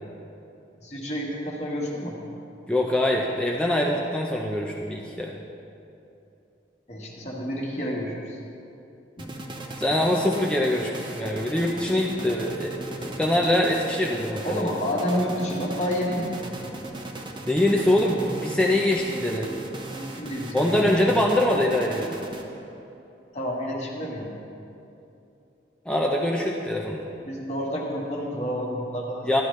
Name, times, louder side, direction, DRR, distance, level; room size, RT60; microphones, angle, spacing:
voice 1, 0.8-2.2 6.9-8.4 9.2-9.3 14.4-16.5 19.9-20.8 23.3-24.3 27.3-29.3, equal, 40° left, -3 dB, 1.5 m, -29 dB
voice 2, 2.7-5.3 9.8-12.7 13.0-14.6 17.5-19.5 20.5-22.1 25.9-27.0 29.2-29.4, left 1 dB, 5° left, -1 dB, 0.5 m, -23 dB
sound 1, 9.2-22.8, right 1 dB, 25° right, 0.7 m, -38 dB
12.5 x 11.5 x 3.2 m, 2.8 s
head